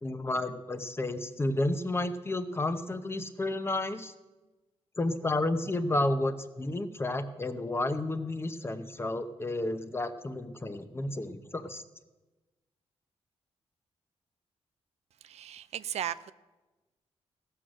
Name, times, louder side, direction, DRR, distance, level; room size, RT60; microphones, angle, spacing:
voice 1, 0.0-4.1 5.0-11.8, left 2 dB, 20° left, 10 dB, 0.8 m, -31 dB
voice 2, 15.2-16.3, right 10 dB, 75° right, 14 dB, 0.4 m, -36 dB
16.0 x 6.3 x 6.3 m, 1.2 s
cardioid pair, 90°, 11 cm